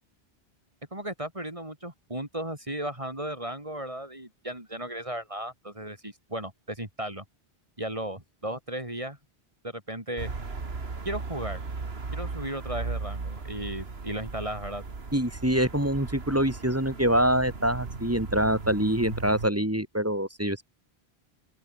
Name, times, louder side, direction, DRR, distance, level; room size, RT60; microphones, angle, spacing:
voice 1, 0.9-7.2 7.8-9.2 9.6-10.3 11.1-11.6 12.1-14.8, right 1 dB, 30° right, 4.0 m, -35 dB
sound 1, 10.2-19.5, right 4 dB, 70° right, 2.4 m, -37 dB
voice 2, 15.1-20.6, right 1 dB, 15° right, 2.5 m, -25 dB
open air
omnidirectional pair, 1.1 m